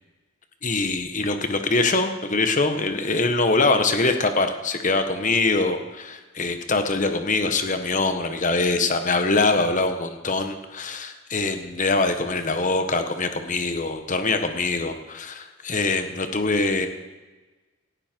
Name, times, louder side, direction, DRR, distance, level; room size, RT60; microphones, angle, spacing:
voice 1, 0.6-16.9, left 3 dB, 40° left, 7 dB, 1.5 m, -23 dB
18.0 x 15.5 x 4.7 m, 1.2 s
head